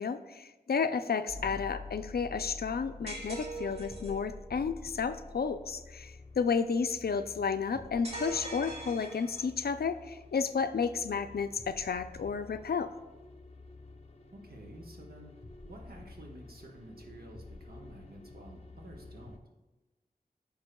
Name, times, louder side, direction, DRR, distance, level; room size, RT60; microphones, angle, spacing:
voice 1, 0.0-12.9, left 5 dB, 75° left, 10 dB, 0.4 m, -32 dB
sound 1, 1.3-19.4, left 2 dB, 40° left, 0.6 m, -49 dB
sound 2, 3.1-4.2 8.0-9.6, right 2 dB, 40° right, 1.6 m, -42 dB
voice 2, 14.3-19.4, right 1 dB, 70° right, -1 dB, 1.1 m, -51 dB
14.0 x 5.3 x 2.2 m, 1.1 s
wide cardioid pair, 55°, 16 cm